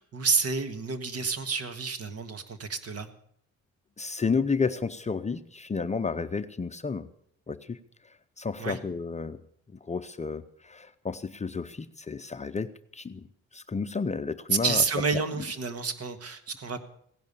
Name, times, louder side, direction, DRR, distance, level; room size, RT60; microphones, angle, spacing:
voice 1, 0.0-3.1 8.6-8.8 14.5-16.8, right 4 dB, 50° right, 10 dB, 1.7 m, -29 dB
voice 2, 4.0-7.1 7.5-7.8 8.4-9.4 9.9-13.2 13.5-14.8, left 4 dB, 25° left, 10 dB, 0.7 m, -31 dB
16.5 x 10.5 x 6.9 m, 0.68 s
cardioid pair, 90°, 30 cm